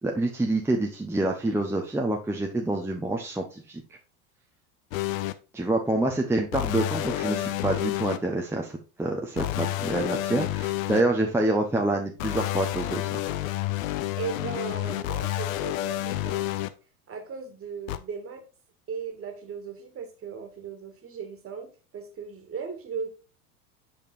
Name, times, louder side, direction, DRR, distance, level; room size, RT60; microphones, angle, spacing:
voice 1, 0.0-3.8 5.5-13.2, right 2 dB, 5° right, 0.9 m, -27 dB
sound 1, 4.9-5.3 6.5-8.2 9.4-11.0 12.2-16.7 17.9-18.0, left 15 dB, 65° left, 0.8 m, -29 dB
voice 2, 13.8-16.5 17.1-18.4 18.9-23.1, right 6 dB, 30° right, 2.0 m, -37 dB
8.3 x 5.1 x 2.6 m
hypercardioid pair, 85°, 44 cm